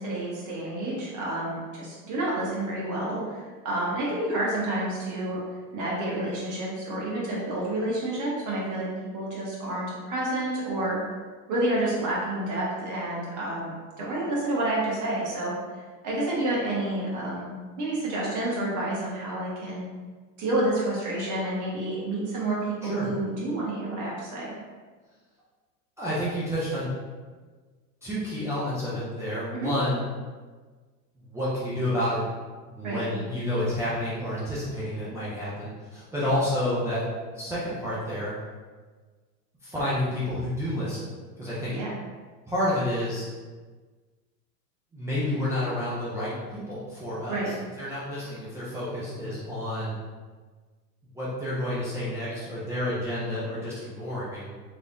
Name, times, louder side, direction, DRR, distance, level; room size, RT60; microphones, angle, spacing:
voice 1, 0.0-5.4 5.7-8.9 9.1-11.0 11.5-15.5 16.0-19.9 20.4-24.5 29.5-29.7 32.8-33.0 36.2-36.3 41.7-41.9 47.3-47.5, right 1 dB, 40° right, -5 dB, 1.5 m, -29 dB
voice 2, 26.0-26.9 28.0-30.1 31.3-32.2 32.6-37.1 37.3-38.3 39.6-41.1 41.4-41.7 42.5-43.3 44.9-49.9 51.1-54.6, left 1 dB, 5° right, -11 dB, 0.3 m, -30 dB
3.4 x 3.2 x 2.5 m, 1.4 s
hypercardioid pair, 100°, 49 cm